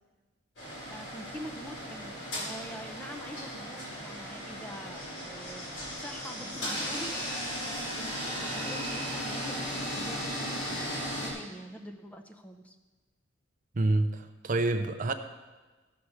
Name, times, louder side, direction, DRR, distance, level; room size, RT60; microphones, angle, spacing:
sound 1, 0.6-11.3, equal, 70° left, 4.4 m, -36 dB
voice 1, 0.9-5.7 5.9-12.8, equal, 5° left, 0.7 m, -45 dB
voice 2, 13.8-15.1, right 2 dB, 40° right, 0.6 m, -27 dB
14.0 x 5.9 x 6.4 m
head